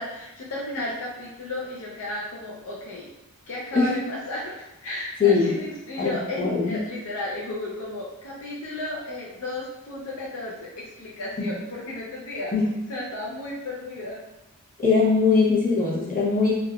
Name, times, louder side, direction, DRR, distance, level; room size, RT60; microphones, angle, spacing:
voice 1, 0.0-3.1 3.5-12.5 12.9-14.2, left 2 dB, 65° left, -5 dB, 0.5 m, -34 dB
voice 2, 5.2-5.5 6.0-6.8 11.4-11.5 12.5-12.7 14.8-16.6, left 4 dB, 40° left, -6 dB, 0.8 m, -21 dB
3.3 x 2.3 x 2.3 m, 0.93 s
head